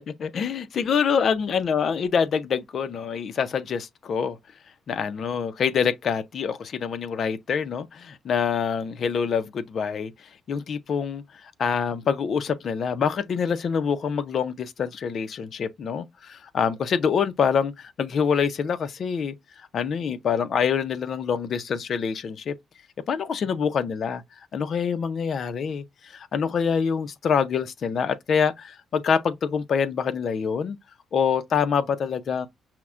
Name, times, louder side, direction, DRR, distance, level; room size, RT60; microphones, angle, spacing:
voice 1, 0.1-4.4 4.9-19.3 19.7-22.6 23.1-24.2 24.5-30.8 31.1-32.5, left 6 dB, 55° left, 0.4 m, -26 dB
5.7 x 2.0 x 2.4 m
cardioid pair, 90°, 0 cm